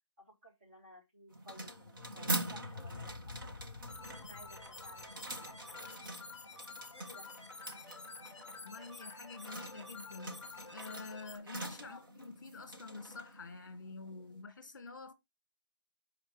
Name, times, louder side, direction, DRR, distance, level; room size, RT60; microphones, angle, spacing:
voice 1, 0.2-3.3 4.2-5.8 6.9-7.3 11.8-12.1, equal, 25° right, 2.9 m, -57 dB
sound 1, 1.3-14.4, right 1 dB, 45° right, 1.7 m, -44 dB
sound 2, 1.5-6.6, left 4 dB, 60° left, 0.7 m, -51 dB
sound 3, 3.9-11.4, left 4 dB, 15° left, 1.8 m, -50 dB
voice 2, 8.6-10.4 10.7-15.1, left 4 dB, 45° left, 1.6 m, -48 dB
11.5 x 5.4 x 3.1 m
hypercardioid pair, 175°, 15 cm